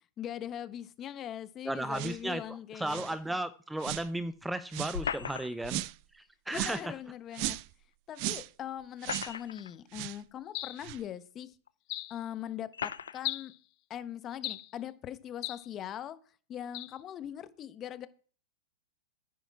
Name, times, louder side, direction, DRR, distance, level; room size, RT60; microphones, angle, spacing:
voice 1, 0.2-3.1 6.5-7.6 8.1-11.5 12.1-13.6 13.9-16.2 16.5-18.1, left 10 dB, 30° left, 1.0 m, -41 dB
voice 2, 1.7-5.8 6.1-6.9, right 1 dB, 5° right, 0.6 m, -35 dB
sound 1, 1.9-2.2 2.9-3.2 3.8-4.1 4.7-5.0 5.6-6.0 6.5-6.9 7.3-7.7 8.2-8.5 9.0-9.3 9.9-10.2 10.8-11.0, right 19 dB, 50° right, 0.5 m, -37 dB
sound 2, 4.9-5.8 7.5-7.6 8.8-9.7 10.6-10.7 11.7-11.8 12.7-13.2, left 7 dB, 90° left, 0.6 m, -37 dB
sound 3, 10.5-10.9 11.9-12.2 13.2-13.6 14.4-14.7 15.4-15.7 16.7-17.0, left 20 dB, 45° left, 0.5 m, -37 dB
10.0 x 9.5 x 4.8 m
hypercardioid pair, 120°, 0 cm